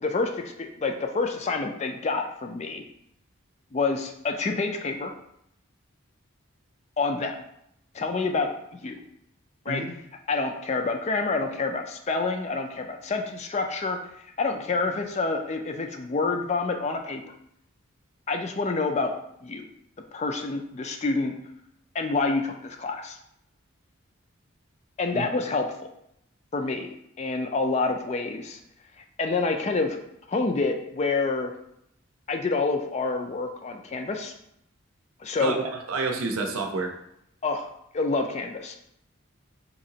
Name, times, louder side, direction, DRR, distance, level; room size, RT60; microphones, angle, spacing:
voice 1, 0.0-2.8 3.7-5.1 7.0-7.4 7.9-9.0 9.7-9.8 10.3-14.0 14.4-17.2 18.3-19.1 19.4-19.7 20.1-21.3 21.9-23.2 25.0-25.9 26.5-28.6 29.2-30.0 30.3-31.5 32.3-34.3 35.2-35.5 37.4-38.8, left 3 dB, 30° left, 5 dB, 0.3 m, -28 dB
voice 2, 35.4-36.9, right 3 dB, 90° right, 4 dB, 0.6 m, -29 dB
4.2 x 2.8 x 2.7 m, 0.76 s
head